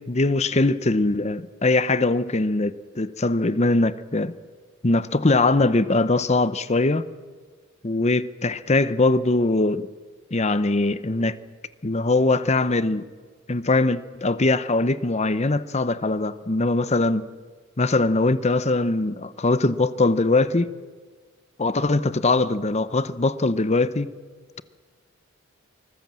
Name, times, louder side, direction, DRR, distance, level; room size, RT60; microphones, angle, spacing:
voice 1, 0.1-4.3 4.8-7.0 7.8-9.9 10.3-11.4 11.8-13.0 13.5-17.2 17.8-20.7 21.6-24.1, left 2 dB, 30° left, 0.8 m, -21 dB
25.0 x 20.0 x 7.5 m
head